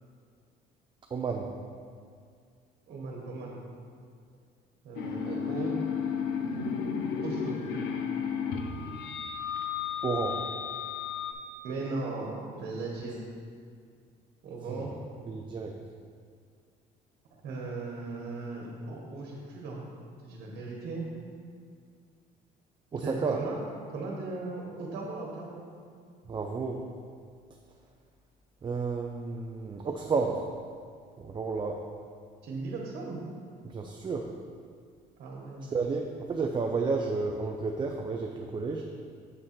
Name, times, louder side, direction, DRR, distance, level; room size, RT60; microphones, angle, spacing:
voice 1, 1.1-1.5 10.0-10.4 14.7-14.9 15.3-15.7 22.9-23.4 26.3-26.8 28.6-30.4 31.2-31.8 33.6-34.3 35.6-38.8, right 4 dB, 30° right, 2 dB, 0.5 m, -31 dB
voice 2, 2.9-3.6 4.8-5.8 7.2-7.6 11.6-13.2 14.4-14.9 17.4-19.8 20.2-21.0 23.0-23.6 23.9-25.6 32.4-33.2 35.2-35.8, right 3 dB, 70° right, -2 dB, 1.3 m, -37 dB
sound 1, 4.9-11.3, left 6 dB, 90° left, 0.7 m, -33 dB
8.0 x 3.7 x 6.0 m, 2.1 s
cardioid pair, 110°, 17 cm